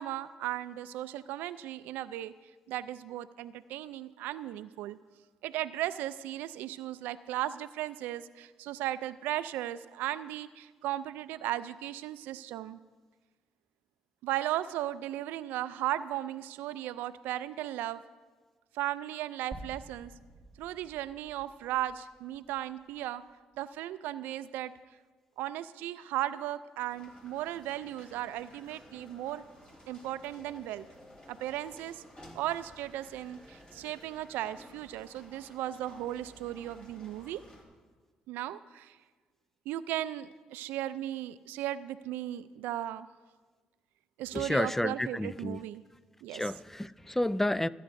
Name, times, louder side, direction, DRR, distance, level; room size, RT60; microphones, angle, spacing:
voice 1, 0.0-2.3 2.7-5.0 5.4-12.8 14.2-18.0 18.7-20.1 20.6-23.2 23.6-24.7 25.4-29.4 29.9-30.9 31.3-32.0 32.4-37.4 38.3-39.0 39.7-43.1 44.2-45.8 46.2-46.4, right 13 dB, 85° right, 15 dB, 0.3 m, -36 dB
sound 1, 19.5-23.7, right 2 dB, 15° right, 1.7 m, -51 dB
sound 2, 26.9-37.6, left 1 dB, 25° left, 3.0 m, -55 dB
voice 2, 44.3-45.6 46.3-47.7, left 1 dB, 10° left, 18 dB, 0.3 m, -30 dB
26.5 x 9.1 x 2.6 m, 1.4 s
supercardioid pair, 65°, 3 cm